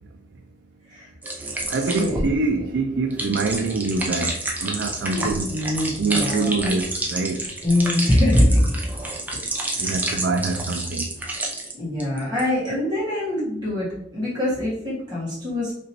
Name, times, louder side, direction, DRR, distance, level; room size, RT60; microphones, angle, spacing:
sound 1, 1.2-11.7 12.0-12.4, right 2 dB, 10° right, 0.7 m, -29 dB
Musical instrument, 1.3-6.9, right 1 dB, 60° right, 1.6 m, -45 dB
voice 1, 1.7-5.5 6.0-7.4 9.8-11.1 12.7-12.8, right 3 dB, 80° right, 4 dB, 0.4 m, -25 dB
voice 2, 5.1-6.5 7.6-8.7 9.3-9.9 11.7-15.7, left 1 dB, 25° right, -7 dB, 1.7 m, -23 dB
5.2 x 3.0 x 3.0 m, 0.71 s
head